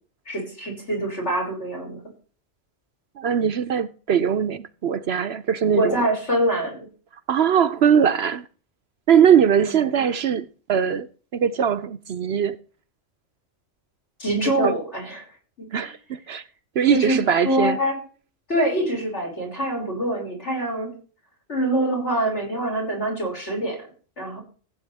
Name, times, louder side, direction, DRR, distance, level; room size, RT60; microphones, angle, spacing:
voice 1, 0.3-2.0 5.8-6.9 9.6-10.1 14.2-15.2 15.6-15.9 16.9-18.0 18.5-20.9 21.5-23.9 24.2-24.4, right 1 dB, 60° left, 6.1 m, -25 dB
voice 2, 3.2-6.1 7.3-8.5 9.1-11.1 11.3-12.6 14.4-14.8 15.7-16.4 16.8-17.8, right 8 dB, 60° right, 0.9 m, -21 dB
15.5 x 8.8 x 3.4 m
omnidirectional pair, 1.3 m